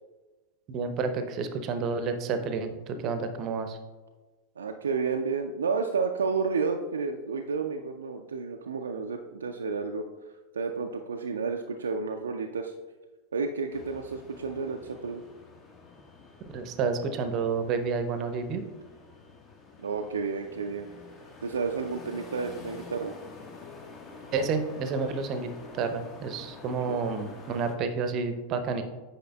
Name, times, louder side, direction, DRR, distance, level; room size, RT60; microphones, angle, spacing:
voice 1, 0.7-3.8 16.5-18.6 24.3-28.8, right 5 dB, 35° right, 8 dB, 0.6 m, -30 dB
voice 2, 4.6-10.0 10.5-12.7 13.3-15.2 19.8-20.9 21.4-23.1 26.8-27.0, right 5 dB, 70° right, 3 dB, 0.3 m, -31 dB
sound 1, 13.7-27.8, left 4 dB, 30° left, 0.9 m, -48 dB
8.4 x 5.6 x 2.2 m, 1.3 s
figure-of-eight pair, 90°, 0 cm